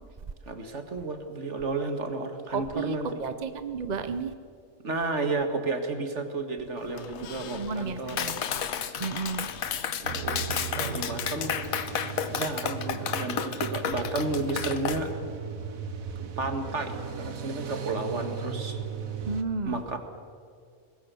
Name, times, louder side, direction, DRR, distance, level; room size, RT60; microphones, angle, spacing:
voice 1, 0.5-3.2 4.8-8.3 10.0-11.7 12.3-15.1 16.2-18.8 19.7-20.0, right 3 dB, 60° right, 6 dB, 2.1 m, -32 dB
voice 2, 2.5-4.3 7.5-8.4 9.0-9.5 19.3-19.8, right 4 dB, 40° right, 10 dB, 0.7 m, -32 dB
Squeak, 6.8-12.6, left 8 dB, 60° left, 1.0 m, -43 dB
Clapping, 8.2-15.0, left 8 dB, 90° left, 1.5 m, -31 dB
sound 1, 10.0-19.4, right 6 dB, 90° right, 1.6 m, -36 dB
23.0 x 20.0 x 7.0 m, 2.3 s
omnidirectional pair, 1.4 m